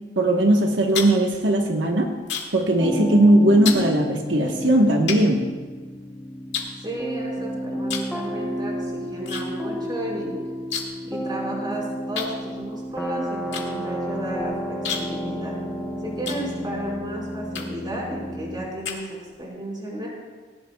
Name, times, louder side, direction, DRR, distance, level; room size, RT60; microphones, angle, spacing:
voice 1, 0.2-2.1 2.5-5.4, right 1 dB, 85° right, 1 dB, 1.3 m, -18 dB
sound 1, 0.6-2.7 3.0-3.3 3.6-3.9 4.5-4.6 5.1-6.0 6.5-7.4 7.8-8.2 8.4-9.4 9.7-9.8 10.1-11.1 11.4-11.5 12.1-16.9 17.5-17.9 18.4-19.5, left 7 dB, 70° left, 2.1 m, -32 dB
sound 2, 2.8-18.7, equal, ahead, 1.0 m, -31 dB
voice 2, 6.8-10.4 11.0-15.6 16.0-20.1, right 1 dB, 25° right, -4 dB, 5.0 m, -33 dB
18.5 x 18.0 x 2.3 m, 1.4 s
head